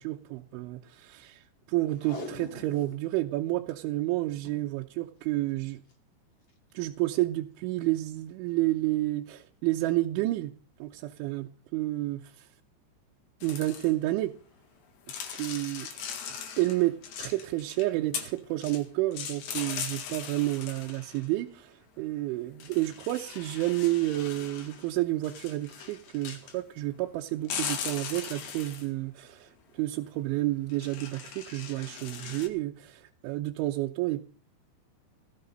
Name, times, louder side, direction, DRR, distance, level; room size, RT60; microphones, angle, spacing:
voice 1, 0.0-5.8 6.7-10.5 10.8-12.5 13.4-14.3 15.4-15.9 16.6-34.2, right 17 dB, 85° right, 2 dB, 3.2 m, -30 dB
Packing tape duct tape, 1.9-3.1 3.4-3.7 4.3-4.7 5.7-5.9 6.5-6.6, left 2 dB, 30° left, 2.5 m, -42 dB
sound 1, 13.4-14.1 15.1-17.9 18.1-18.8 19.1-21.3 22.6-24.9 25.2-26.6 27.4-28.9 30.7-32.5, left 7 dB, 70° left, 4.0 m, -39 dB
18.0 x 13.5 x 3.9 m, 0.41 s
omnidirectional pair, 5.4 m